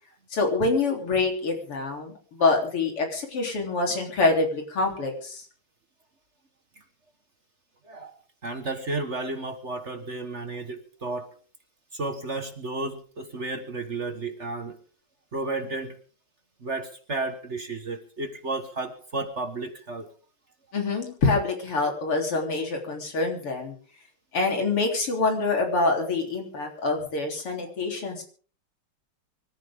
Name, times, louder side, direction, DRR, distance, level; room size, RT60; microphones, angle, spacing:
voice 1, 0.3-5.5 20.7-23.7 24.3-28.2, left 3 dB, 90° left, 2 dB, 4.5 m, -26 dB
voice 2, 7.8-8.1 8.4-11.3 11.9-14.8 15.3-16.0 16.6-20.1, right 2 dB, 35° right, 8 dB, 1.5 m, -32 dB
24.5 x 14.0 x 3.7 m, 0.42 s
omnidirectional pair, 2.4 m